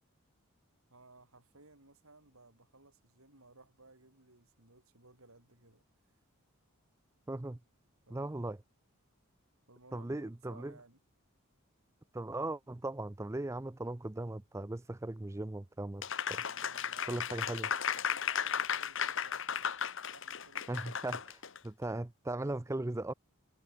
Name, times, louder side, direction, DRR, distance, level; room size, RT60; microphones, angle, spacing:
voice 1, 0.9-5.8 8.1-8.3 9.7-11.0 16.3-19.7 20.1-20.9, right 2 dB, 70° right, 5.8 m, -59 dB
voice 2, 7.3-7.6 8.1-8.6 9.9-10.8 12.1-16.0 16.3-16.4 17.1-17.7 20.7-23.1, right 2 dB, 15° right, 0.4 m, -38 dB
Applause, 16.0-21.6, left 8 dB, 60° left, 1.6 m, -35 dB
head